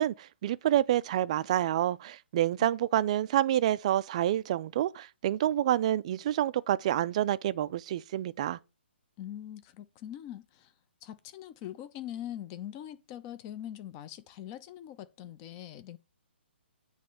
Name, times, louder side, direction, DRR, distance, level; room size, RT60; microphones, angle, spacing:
voice 1, 0.0-8.6, right 12 dB, 35° right, 0.4 m, -28 dB
voice 2, 9.2-10.7 11.0-16.0, left 11 dB, 25° left, 0.5 m, -42 dB
8.8 x 3.1 x 6.5 m
hypercardioid pair, 160°, 6 cm